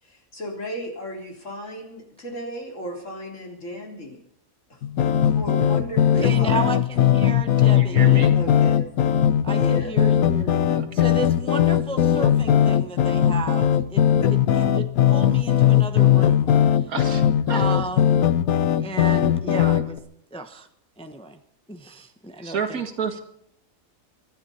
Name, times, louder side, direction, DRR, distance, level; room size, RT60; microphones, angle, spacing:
voice 1, 0.0-4.2 4.7-4.8 5.2-6.6 8.3-8.8 9.5-10.0, equal, 60° left, 1 dB, 4.1 m, -35 dB
sound 1, 4.8-20.0, left 10 dB, 80° left, 1.3 m, -19 dB
voice 2, 6.2-8.3 9.4-16.6 17.5-18.2 18.8-20.0 20.3-20.7 21.0-21.4 21.7-22.8, right 3 dB, 5° left, 7 dB, 0.9 m, -34 dB
voice 3, 7.6-8.4 10.7-11.0 16.9-17.2 17.5-17.6 22.4-23.2, right 6 dB, 85° right, 6 dB, 2.3 m, -30 dB
25.0 x 12.0 x 4.3 m, 0.73 s
omnidirectional pair, 1.5 m